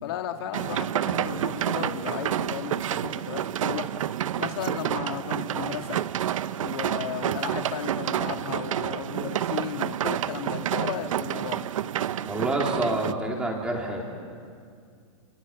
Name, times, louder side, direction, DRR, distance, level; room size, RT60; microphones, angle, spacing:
voice 1, 0.0-3.9 4.4-6.0 6.6-11.7, left 9 dB, 45° left, 5 dB, 2.1 m, -34 dB
sound 1, 0.5-13.1, right 11 dB, 70° right, 0.8 m, -29 dB
voice 2, 12.3-14.0, right 1 dB, 5° right, 0 dB, 3.0 m, -28 dB
28.5 x 28.0 x 7.2 m, 2.2 s
supercardioid pair, 175°, 18 cm